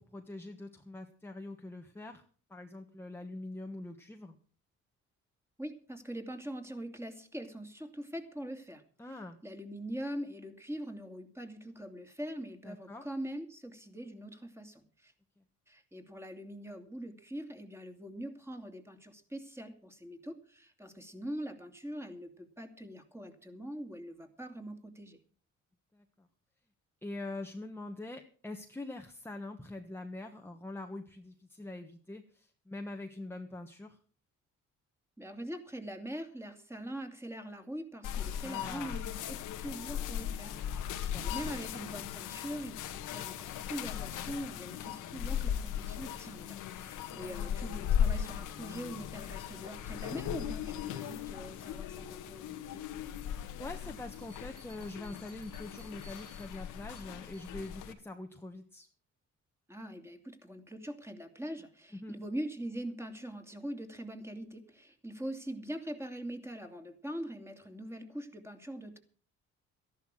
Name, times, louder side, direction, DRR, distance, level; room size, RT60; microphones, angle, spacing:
voice 1, 0.0-2.2 2.5-4.4 9.0-9.4 12.6-13.0 25.9-26.3 27.0-34.0 38.4-39.0 41.0-41.3 47.1-47.3 53.6-58.9 61.9-62.1, left 2 dB, 10° left, 4 dB, 1.3 m, -44 dB
voice 2, 5.6-15.1 15.7-25.2 35.2-52.8 59.7-69.0, right 1 dB, 10° right, 5 dB, 2.7 m, -43 dB
sound 1, 38.0-57.9, left 9 dB, 85° left, 1.5 m, -38 dB
sound 2, 54.1-57.8, right 3 dB, 50° right, 3.6 m, -60 dB
13.5 x 11.5 x 6.2 m, 0.42 s
cardioid pair, 90°, 30 cm